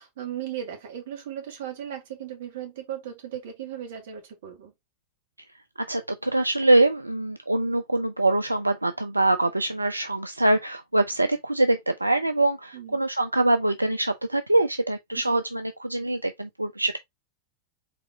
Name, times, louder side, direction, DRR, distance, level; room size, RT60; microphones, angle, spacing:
voice 1, 0.0-4.7 12.7-13.0 15.2-15.4, right 10 dB, 55° right, 2.0 m, -37 dB
voice 2, 5.8-17.0, right 2 dB, 85° right, 0.4 m, -24 dB
4.8 x 4.1 x 2.7 m
figure-of-eight pair, 90°, 0 cm